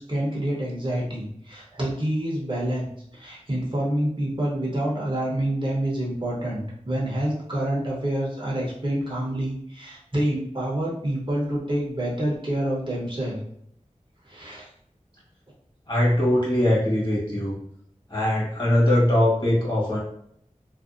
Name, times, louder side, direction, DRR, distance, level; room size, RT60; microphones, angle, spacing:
voice 1, 0.0-2.9 3.1-13.4 14.2-14.7, right 1 dB, 40° right, -5 dB, 0.8 m, -27 dB
voice 2, 15.9-17.6 18.1-20.0, left 1 dB, 35° left, -6 dB, 1.3 m, -21 dB
2.5 x 2.1 x 2.4 m, 0.69 s
wide cardioid pair, 40°, 13 cm